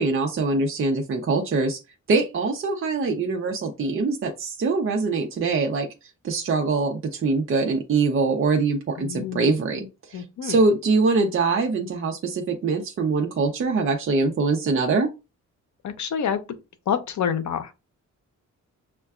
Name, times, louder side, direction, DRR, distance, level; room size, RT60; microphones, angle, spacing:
voice 1, 0.0-1.8 2.1-5.9 6.2-15.1, right 3 dB, 45° right, 0.5 m, -23 dB
voice 2, 9.0-9.6 10.1-10.6 15.8-16.4 16.9-17.7, left 8 dB, 65° left, 0.6 m, -27 dB
6.4 x 2.2 x 2.3 m
wide cardioid pair, 180°, 31 cm